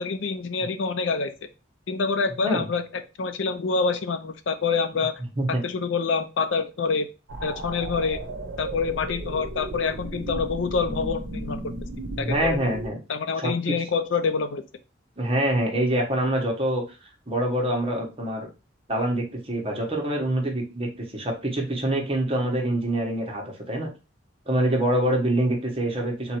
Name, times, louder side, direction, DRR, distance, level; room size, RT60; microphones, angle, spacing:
voice 1, 0.0-1.3 1.9-2.8 3.2-5.2 5.6-7.1 7.4-8.2 8.6-11.7 12.2-12.6 13.1-14.6, left 4 dB, 80° left, 10 dB, 0.5 m, -26 dB
sound 1, 7.3-12.9, right 2 dB, 80° right, 0.7 m, -34 dB
voice 2, 12.1-13.0 13.4-13.7 15.2-16.8 17.3-18.5 18.9-23.9 24.5-26.4, right 1 dB, 30° right, 0 dB, 1.2 m, -25 dB
3.8 x 2.9 x 4.5 m, 0.31 s
head